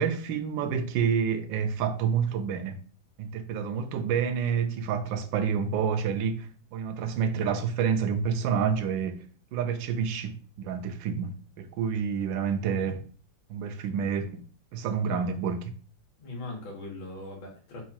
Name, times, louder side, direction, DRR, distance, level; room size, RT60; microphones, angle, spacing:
voice 1, 0.0-2.8 3.2-9.2 9.5-11.3 11.6-13.0 13.5-14.4 14.7-15.6, right 7 dB, 80° right, 1.3 m, -28 dB
voice 2, 15.0-15.4 16.2-17.8, left 2 dB, 85° left, 2.3 m, -40 dB
4.7 x 2.4 x 4.2 m
omnidirectional pair, 2.1 m